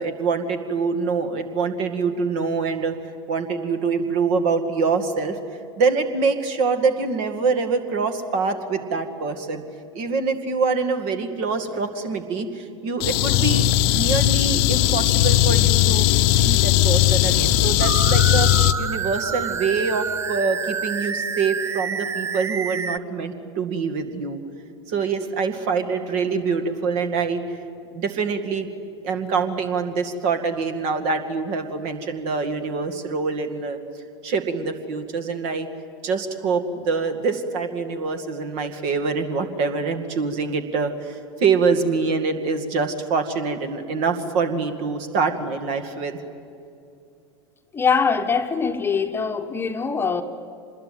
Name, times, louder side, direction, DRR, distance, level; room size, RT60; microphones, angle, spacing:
voice 1, 0.0-3.0 3.3-5.4 5.8-9.6 9.9-16.1 16.4-18.5 18.8-24.4 24.9-27.6 27.9-28.7 29.0-33.8 34.2-35.7 36.0-46.2, right 4 dB, 50° right, 7 dB, 2.2 m, -25 dB
sound 1, 13.0-18.7, left 14 dB, 50° left, 0.9 m, -18 dB
sound 2, 17.8-23.0, right 6 dB, 20° right, 0.6 m, -28 dB
voice 2, 47.7-50.2, left 5 dB, 15° left, 5 dB, 1.2 m, -22 dB
25.5 x 21.0 x 9.4 m, 2.5 s
figure-of-eight pair, 80°, 15 cm